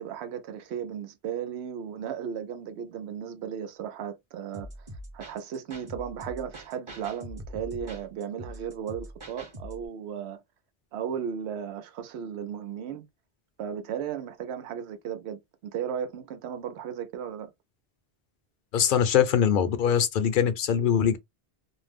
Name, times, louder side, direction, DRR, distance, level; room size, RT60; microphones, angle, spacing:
voice 1, 0.0-4.7 5.1-10.4 10.9-13.0 13.6-17.5, right 8 dB, 85° right, 0.8 m, -35 dB
sound 1, 4.5-9.9, equal, 30° right, 0.9 m, -43 dB
voice 2, 18.7-21.2, left 8 dB, 60° left, 0.7 m, -22 dB
2.6 x 2.0 x 3.3 m
omnidirectional pair, 1.1 m